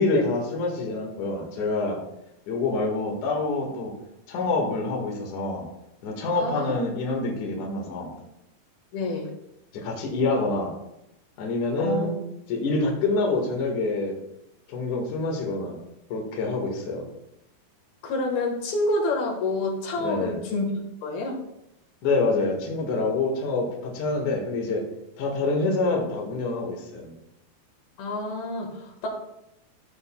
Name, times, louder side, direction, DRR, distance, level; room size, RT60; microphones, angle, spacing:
voice 1, 0.0-2.0 2.5-3.9 4.3-5.7 6.0-8.1 9.7-10.8 11.4-12.2 12.5-14.2 14.7-15.8 16.1-17.0 20.0-20.4 22.0-24.9 25.2-27.1, left 3 dB, 60° left, 0 dB, 2.9 m, -26 dB
voice 2, 6.4-6.7 8.9-9.3 11.8-12.1 18.0-20.7 21.0-21.4 28.0-29.1, left 2 dB, 80° left, 0 dB, 3.4 m, -28 dB
14.0 x 7.9 x 2.3 m, 0.83 s
omnidirectional pair, 4.4 m